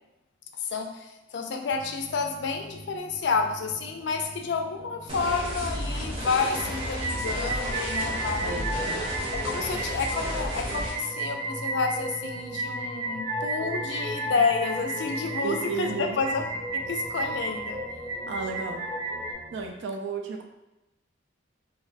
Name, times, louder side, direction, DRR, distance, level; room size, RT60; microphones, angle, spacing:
voice 1, 0.6-8.6 9.3-16.4 16.7-17.8, left 4 dB, 60° left, 5 dB, 0.4 m, -30 dB
sound 1, 1.7-19.7, equal, 15° left, 0.8 m, -45 dB
sound 2, 5.1-10.9, equal, 30° right, 0.7 m, -33 dB
sound 3, 6.5-19.3, right 1 dB, 85° right, 0.8 m, -33 dB
voice 2, 8.4-9.1 15.4-16.2 18.3-18.8 19.5-20.4, right 5 dB, 65° right, 3 dB, 0.3 m, -33 dB
2.5 x 2.1 x 3.9 m, 0.98 s
head